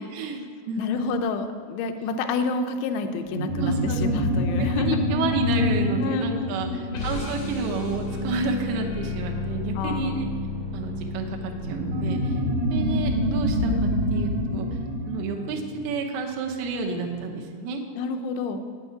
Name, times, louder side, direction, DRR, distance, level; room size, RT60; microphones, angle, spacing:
voice 1, 0.0-1.2 3.6-4.0 4.8-6.7 7.0-10.3 10.7-12.3 12.7-14.7 15.1-17.8, right 3 dB, 75° right, 2 dB, 2.4 m, -30 dB
voice 2, 0.8-5.0 6.0-7.0 9.8-10.2 17.9-18.6, left 4 dB, 80° left, 6 dB, 2.5 m, -29 dB
sound 1, 3.3-8.3 11.6-16.5, left 1 dB, 60° right, 1.8 m, -26 dB
sound 2, 6.9-13.4, left 2 dB, 50° left, 1.7 m, -32 dB
9.6 x 7.0 x 5.6 m, 2.1 s
omnidirectional pair, 5.6 m